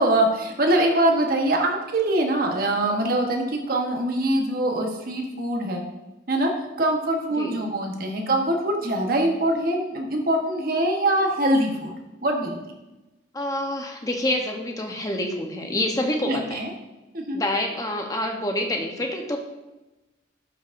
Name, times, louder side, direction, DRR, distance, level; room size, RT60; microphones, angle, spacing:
voice 1, 0.0-5.8 6.3-6.5 6.8-11.9 12.2-12.6 16.3-16.7 17.1-17.4, right 1 dB, 50° right, 1 dB, 1.2 m, -23 dB
voice 2, 13.3-16.6 17.3-19.4, left 1 dB, 20° left, 2 dB, 0.9 m, -27 dB
11.5 x 5.9 x 2.6 m, 1.0 s
head